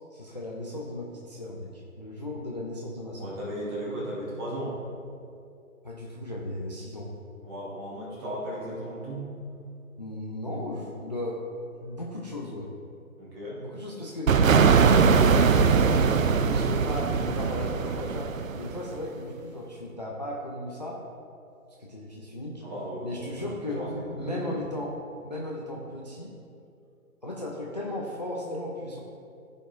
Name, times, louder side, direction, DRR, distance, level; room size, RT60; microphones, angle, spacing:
voice 1, 0.1-3.3 5.8-7.1 10.0-11.4 11.8-12.7 13.6-15.1 15.8-16.1 16.4-21.0 21.8-22.6 23.0-23.8 24.1-25.0 25.2-26.4 27.2-29.0, left 1 dB, 30° left, -3 dB, 0.4 m, -36 dB
voice 2, 3.2-4.8 7.4-9.4 13.2-13.6 22.6-24.7, right 1 dB, 15° right, -6 dB, 1.4 m, -36 dB
sound 1, 14.3-18.9, right 5 dB, 65° right, 0.5 m, -21 dB
14.0 x 5.2 x 2.5 m, 2.6 s
figure-of-eight pair, 150°, 44 cm